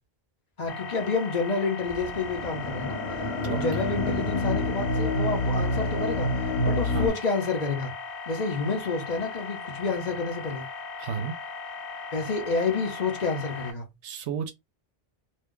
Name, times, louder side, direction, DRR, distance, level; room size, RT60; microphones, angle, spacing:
voice 1, 0.6-7.9 8.3-10.7 12.1-13.9, left 4 dB, 40° left, 0.9 m, -29 dB
sound 1, 0.7-13.7, left 4 dB, 85° left, 1.1 m, -38 dB
sound 2, 1.9-7.1, left 1 dB, 65° left, 1.4 m, -28 dB
voice 2, 11.0-11.3 14.0-14.5, right 7 dB, 80° right, 0.9 m, -31 dB
2.6 x 2.2 x 3.6 m
omnidirectional pair, 1.1 m